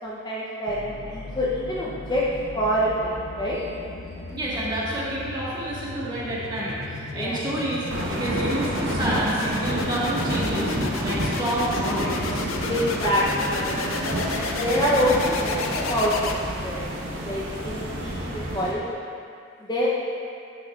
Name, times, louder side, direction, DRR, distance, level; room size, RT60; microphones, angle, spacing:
voice 1, 0.0-2.2 2.5-3.6 7.1-7.4 12.7-13.8 14.0-16.9 17.2-19.1 19.7-19.9, equal, 20° left, -6 dB, 0.7 m, -26 dB
sound 1, 0.7-16.8, left 3 dB, 75° left, 0.6 m, -33 dB
voice 2, 4.3-10.7 11.0-12.4 13.5-13.6, right 1 dB, 20° right, -8 dB, 1.5 m, -29 dB
sound 2, 7.9-18.7, right 1 dB, 65° right, 1.2 m, -29 dB
10.0 x 7.6 x 2.4 m, 2.5 s
head